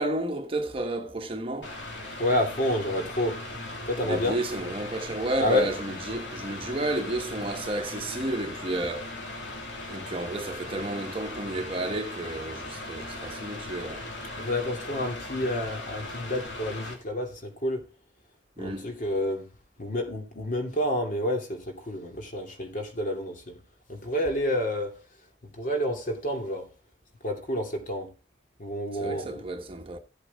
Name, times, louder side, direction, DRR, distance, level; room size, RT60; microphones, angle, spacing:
voice 1, 0.0-1.8 4.0-9.1 9.9-14.1 18.6-18.9 29.0-30.0, right 1 dB, 30° right, 1.1 m, -31 dB
Mechanical fan, 1.6-16.9, left 2 dB, 70° left, 3.1 m, -38 dB
voice 2, 2.2-3.4 3.8-4.4 5.4-5.7 14.4-17.8 18.6-19.4 19.8-23.5 23.9-25.0 25.6-26.7 27.2-28.1 28.6-29.4, left 1 dB, 45° left, 2.6 m, -29 dB
16.0 x 8.1 x 2.3 m
head